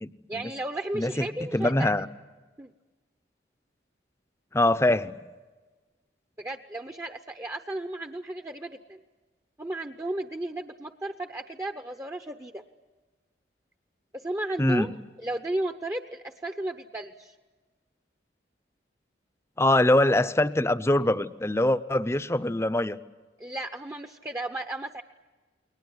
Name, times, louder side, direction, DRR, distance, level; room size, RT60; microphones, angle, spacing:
voice 1, 0.3-1.9 2.6-2.7 6.4-9.0 9.6-12.6 14.1-14.9 15.2-17.3 23.4-25.0, right 1 dB, 15° right, 6 dB, 0.8 m, -34 dB
voice 2, 0.9-1.3 1.5-2.1 4.5-5.1 14.6-14.9 19.6-23.0, left 1 dB, 15° left, 13 dB, 0.7 m, -23 dB
29.5 x 22.0 x 7.9 m, 1.3 s
head